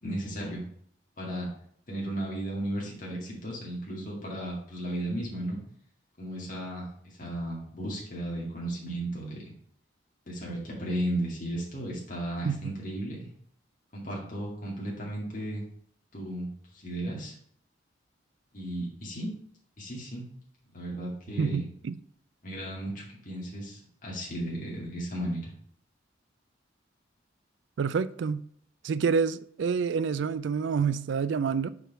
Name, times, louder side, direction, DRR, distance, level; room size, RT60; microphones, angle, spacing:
voice 1, 0.0-0.6 1.2-1.5 1.9-5.6 6.2-6.9 7.2-9.5 10.3-13.3 13.9-15.7 16.1-16.5 16.7-17.3 18.5-19.3 19.8-20.2 20.7-21.6 22.4-25.5, right 1 dB, 45° left, 2.3 m, -34 dB
voice 2, 21.4-22.0 27.8-28.4 28.8-31.7, right 6 dB, 70° right, 0.4 m, -28 dB
5.0 x 4.6 x 6.1 m
head